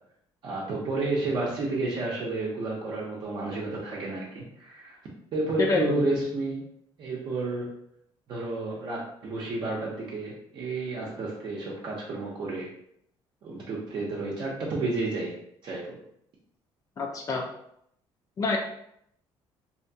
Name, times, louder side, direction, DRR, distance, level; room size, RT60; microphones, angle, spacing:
voice 1, 0.4-5.0 5.3-6.6 7.0-7.8 8.3-12.7 13.4-16.0, right 2 dB, 50° right, -5 dB, 0.6 m, -31 dB
voice 2, 5.6-6.0 17.0-17.5 18.4-18.6, left 3 dB, 35° left, 2 dB, 0.3 m, -26 dB
2.7 x 2.2 x 2.6 m, 0.72 s
cardioid pair, 130°, 10 cm